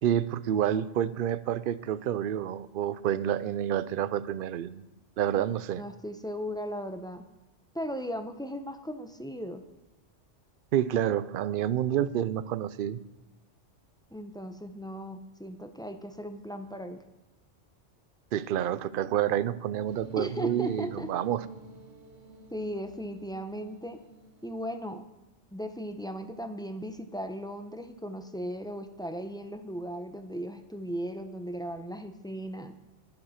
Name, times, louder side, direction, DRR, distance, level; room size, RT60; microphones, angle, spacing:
voice 1, 0.0-4.8 5.2-5.8 10.7-13.0 18.3-21.4, right 10 dB, 60° right, 16 dB, 0.6 m, -28 dB
voice 2, 5.7-7.2 7.7-9.6 14.1-17.0 20.2-21.1 22.5-24.0 24.4-25.0 25.5-32.7, equal, 5° left, 7 dB, 0.7 m, -37 dB
sound 1, 19.9-25.0, right 5 dB, 80° right, 1.9 m, -48 dB
11.0 x 11.0 x 5.8 m, 1.0 s
omnidirectional pair, 1.2 m